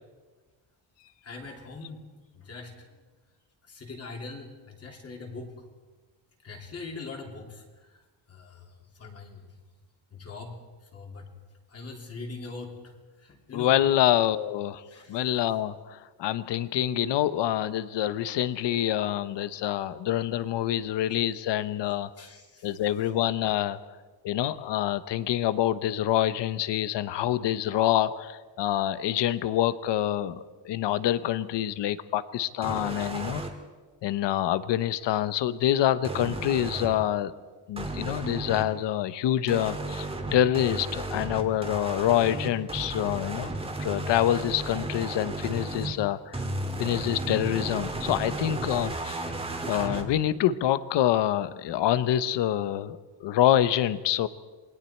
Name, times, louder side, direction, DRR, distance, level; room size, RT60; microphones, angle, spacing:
voice 1, 1.2-2.1 2.4-2.9 3.7-5.5 6.4-8.0 8.3-8.7 9.0-9.5 10.1-10.6 10.9-11.3 11.7-12.9 13.2-13.8 14.9-15.2 22.2-22.7, left 3 dB, 35° left, 1 dB, 3.1 m, -42 dB
voice 2, 13.5-14.8 15.1-22.1 22.6-23.8 24.2-33.4 34.0-37.3 37.7-40.1 40.3-46.4 46.8-49.2 49.7-54.3, left 12 dB, 70° left, 15 dB, 0.9 m, -26 dB
sound 1, 32.6-33.5 36.0-36.9 37.8-38.6 39.5-45.9 46.3-50.0, right 2 dB, 10° right, 1.9 m, -34 dB
27.5 x 21.5 x 4.4 m, 1.3 s
cardioid pair, 175°, 45 cm